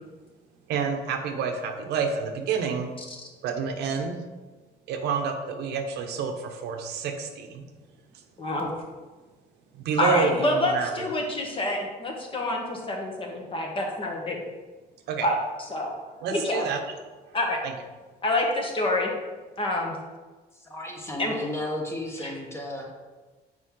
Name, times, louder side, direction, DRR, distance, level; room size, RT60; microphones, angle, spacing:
voice 1, 0.7-2.9 3.4-4.2 4.9-7.6 9.7-10.9 15.1-15.3 16.2-16.8 17.6-17.7, right 5 dB, 80° right, 4 dB, 0.9 m, -28 dB
voice 2, 8.4-8.7 10.0-14.4 15.2-15.9 16.3-16.6 17.3-17.6 18.2-19.1 19.6-20.0 21.2-21.3 22.2-22.3, left 1 dB, 30° left, 0 dB, 1.4 m, -27 dB
voice 3, 20.5-22.9, left 1 dB, 15° left, 0 dB, 1.4 m, -34 dB
6.5 x 4.6 x 3.8 m, 1.3 s
cardioid pair, 110°, 17 cm